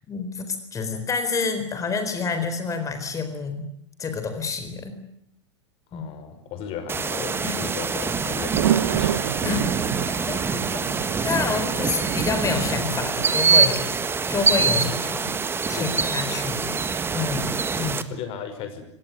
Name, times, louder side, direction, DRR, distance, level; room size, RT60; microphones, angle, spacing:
voice 1, 0.1-3.7 4.0-5.0 5.9-6.0 7.4-7.6 9.4-9.6 10.0-13.8 14.3-15.3 15.7-16.7 17.1-18.1, left 5 dB, 20° left, 8 dB, 4.1 m, -28 dB
voice 2, 5.9-9.3 14.7-15.3 15.7-16.1 18.1-18.8, left 7 dB, 40° left, 9 dB, 5.5 m, -36 dB
sound 1, 6.9-18.0, right 5 dB, 15° right, 1.6 m, -25 dB
sound 2, 8.0-13.7, right 13 dB, 60° right, 1.0 m, -29 dB
26.5 x 18.5 x 9.6 m, 0.72 s
figure-of-eight pair, 95°, 15 cm